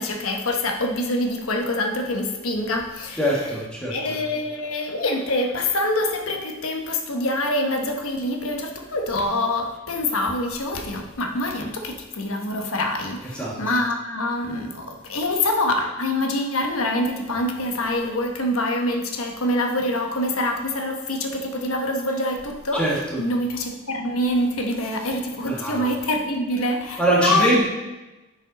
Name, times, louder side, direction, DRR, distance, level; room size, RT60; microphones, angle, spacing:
voice 1, 0.0-3.3 3.9-27.6, left 1 dB, 80° left, 3 dB, 1.1 m, -25 dB
voice 2, 3.2-4.0 13.3-13.6 22.7-23.2 25.4-25.8 27.0-27.6, right 1 dB, 5° left, -5 dB, 1.6 m, -22 dB
10.0 x 5.3 x 4.1 m, 1.1 s
head